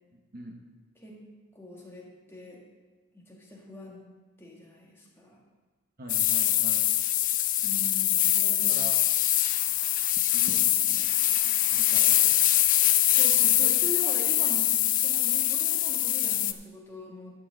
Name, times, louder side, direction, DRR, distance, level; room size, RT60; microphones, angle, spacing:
voice 1, 0.1-0.6 6.0-6.9 8.7-9.0 10.2-12.4, right 2 dB, 45° right, 1 dB, 1.0 m, -45 dB
voice 2, 1.5-2.6 3.1-4.1 4.4-5.4 7.6-8.7 13.1-17.3, left 1 dB, 10° left, -3 dB, 1.7 m, -42 dB
sound 1, 6.1-16.5, left 13 dB, 40° left, 0.4 m, -24 dB
11.0 x 4.6 x 7.5 m, 1.4 s
head